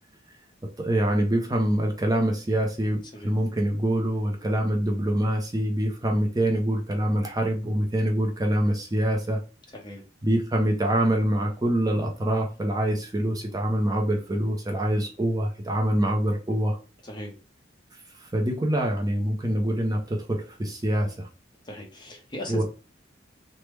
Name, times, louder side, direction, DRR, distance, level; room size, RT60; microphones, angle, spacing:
voice 1, 0.8-9.4 10.2-16.8 18.2-21.3 22.5-22.6, right 1 dB, 20° right, 1 dB, 0.5 m, -25 dB
voice 2, 17.0-17.3 21.7-22.6, left 1 dB, 25° left, 1 dB, 0.7 m, -37 dB
3.2 x 2.1 x 3.1 m, 0.33 s
head